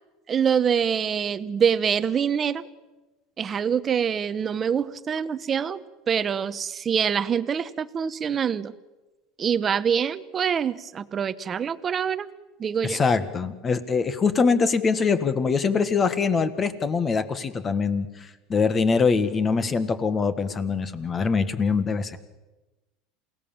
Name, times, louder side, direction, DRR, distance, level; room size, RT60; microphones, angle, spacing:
voice 1, 0.3-2.6 3.4-8.7 9.4-12.3 12.6-13.0, right 7 dB, 25° right, 13 dB, 1.0 m, -25 dB
voice 2, 12.8-22.2, left 5 dB, 25° left, 11 dB, 1.7 m, -23 dB
28.0 x 18.0 x 7.4 m, 1.1 s
supercardioid pair, 135°, 0 cm